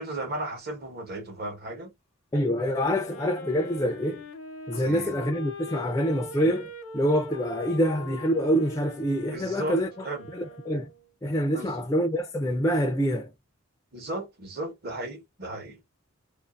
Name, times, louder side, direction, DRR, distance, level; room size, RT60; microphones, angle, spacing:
voice 1, 0.0-1.9 4.7-5.2 9.3-10.3 11.5-11.7 13.9-15.8, right 1 dB, 45° right, 1.0 m, -35 dB
voice 2, 2.3-4.2 4.7-9.9 10.3-10.9 11.2-13.3, equal, 15° left, 0.3 m, -26 dB
Wind instrument woodwind instrument, 2.8-11.1, left 2 dB, 90° left, 0.6 m, -42 dB
2.5 x 2.4 x 2.4 m
head